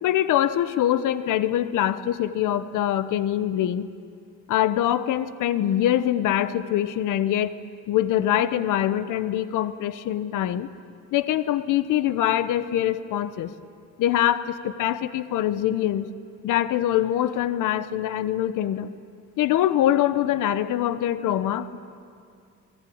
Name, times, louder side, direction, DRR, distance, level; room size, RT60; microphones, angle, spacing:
voice 1, 0.0-3.9 4.5-7.5 7.9-10.7 11.1-13.5 14.0-16.1 16.4-18.9 19.4-21.8, left 12 dB, 85° left, 14 dB, 1.0 m, -24 dB
26.5 x 19.0 x 8.7 m, 2.4 s
cardioid pair, 90°, 30 cm